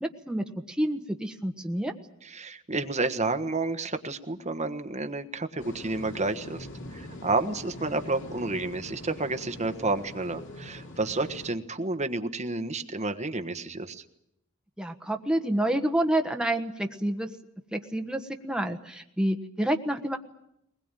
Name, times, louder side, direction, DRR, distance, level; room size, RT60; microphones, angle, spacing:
voice 1, 0.0-1.9 14.8-17.3 17.7-20.2, right 1 dB, 5° right, 5 dB, 1.3 m, -28 dB
voice 2, 2.2-14.0, right 3 dB, 35° right, 8 dB, 1.4 m, -30 dB
sound 1, 5.6-11.5, left 1 dB, 60° left, 2.9 m, -43 dB
21.0 x 20.5 x 9.1 m, 0.80 s
head